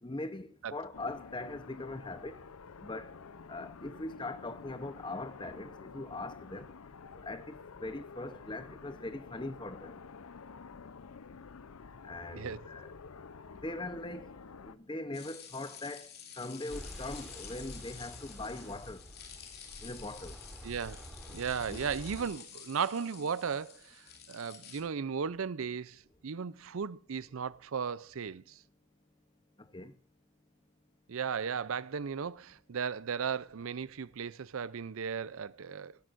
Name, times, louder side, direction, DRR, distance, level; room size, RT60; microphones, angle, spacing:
voice 1, 0.0-2.5 2.8-3.2 3.5-6.7 7.2-10.0 12.0-12.9 13.6-14.3 14.6-19.1 19.8-20.4 21.7-21.9 29.6-29.9, left 2 dB, 20° left, 0.8 m, -41 dB
sound 1, 0.9-14.8, left 5 dB, 80° left, 0.6 m, -50 dB
voice 2, 12.3-12.7 20.6-21.0 21.3-28.6 31.1-36.0, right 6 dB, 70° right, 0.5 m, -36 dB
sound 2, 15.1-24.8, left 7 dB, 45° left, 2.5 m, -50 dB
sound 3, 16.7-22.3, equal, ahead, 3.2 m, -48 dB
16.5 x 12.0 x 2.6 m
head